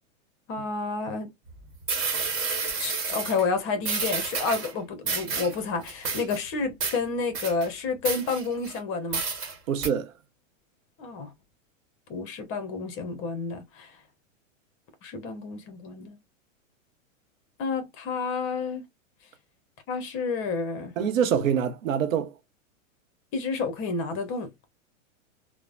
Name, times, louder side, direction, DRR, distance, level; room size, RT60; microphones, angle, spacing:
voice 1, 0.5-1.3 2.8-9.2 11.0-11.3 12.1-13.9 15.0-16.2 17.6-18.9 19.9-20.9 23.3-24.5, left 4 dB, 30° left, 0.8 m, -30 dB
sound 1, 1.5-1.6 1.9-3.4 3.8-4.7 5.1-5.6 5.9-6.4 6.8-7.0 7.3-7.7 8.1-8.8 9.1-9.6 9.8-9.9, right 4 dB, 35° right, 1.2 m, -30 dB
voice 2, 9.7-10.1 21.0-22.3, right 8 dB, 75° right, 0.8 m, -25 dB
3.1 x 2.1 x 2.3 m
hypercardioid pair, 135°, 40 cm